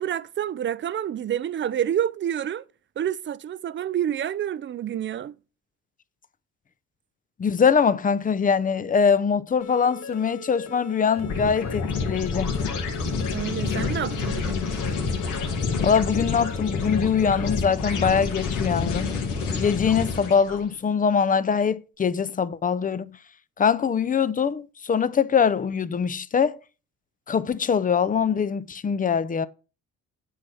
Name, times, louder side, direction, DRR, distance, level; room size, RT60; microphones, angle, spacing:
voice 1, 0.0-2.6 3.0-5.3 13.3-14.6, right 10 dB, 40° right, 0.5 m, -28 dB
voice 2, 7.4-12.5 15.8-19.1 19.6-23.2 23.6-26.6 27.3-29.5, left 6 dB, 30° left, 0.5 m, -23 dB
sound 1, 9.6-17.6, left 1 dB, 60° left, 1.4 m, -40 dB
sound 2, 11.2-20.6, left 5 dB, 85° left, 2.3 m, -28 dB
9.2 x 4.3 x 6.2 m
cardioid pair, 90°, 30 cm